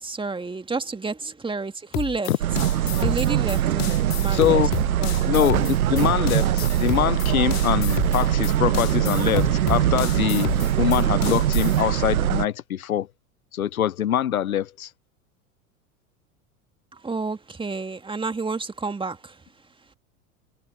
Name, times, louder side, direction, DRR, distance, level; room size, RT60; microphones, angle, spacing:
voice 1, 0.0-2.3 3.0-4.6 5.0-5.3 16.9-19.4, right 4 dB, 10° right, 2.2 m, -30 dB
sound 1, 1.9-11.8, left 15 dB, 40° left, 2.3 m, -32 dB
sound 2, 2.4-12.5, right 12 dB, 85° right, 0.7 m, -22 dB
voice 2, 4.3-4.7 5.3-10.5 10.8-13.1 13.5-14.9, left 11 dB, 85° left, 0.8 m, -24 dB
hypercardioid pair, 90°, 42 cm